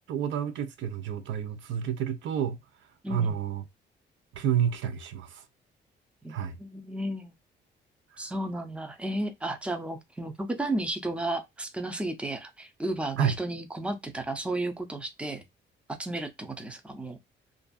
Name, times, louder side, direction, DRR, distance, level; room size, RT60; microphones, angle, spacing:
voice 1, 0.1-2.6 3.1-3.6 4.3-5.4 6.3-6.6 13.2-13.4, right 8 dB, 75° right, 0.6 m, -29 dB
voice 2, 3.0-3.4 6.2-7.3 8.2-15.4 16.0-17.2, right 1 dB, 5° right, 0.5 m, -33 dB
2.5 x 2.4 x 2.2 m
cardioid pair, 90°, 20 cm